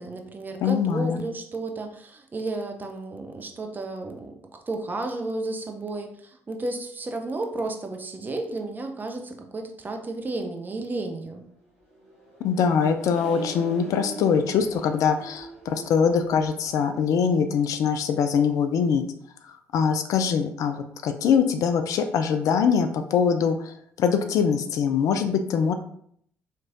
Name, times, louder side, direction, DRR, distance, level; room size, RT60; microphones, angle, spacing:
voice 1, 0.0-4.3 4.7-11.4, right 2 dB, 25° right, 4 dB, 0.6 m, -32 dB
voice 2, 0.6-1.2 12.4-19.0 19.7-25.7, left 6 dB, 50° left, 7 dB, 0.3 m, -23 dB
Accelerating revving vroom, 11.6-18.2, right 2 dB, 85° left, 1.1 m, -44 dB
4.3 x 3.0 x 2.5 m, 0.66 s
figure-of-eight pair, 45°, 7 cm